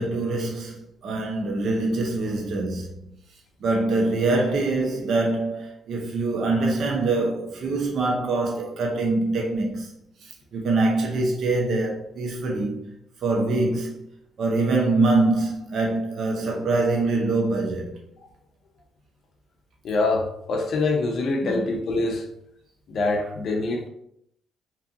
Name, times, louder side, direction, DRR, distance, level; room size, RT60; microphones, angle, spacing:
voice 1, 0.0-2.9 3.6-9.9 10.5-12.8 13.2-14.0 14.4-17.9 21.4-21.6, right 2 dB, 60° right, 0.6 m, -24 dB
voice 2, 19.8-22.2 22.9-23.9, left 3 dB, 60° left, 0.5 m, -25 dB
2.6 x 2.4 x 2.6 m
cardioid pair, 90°, 0 cm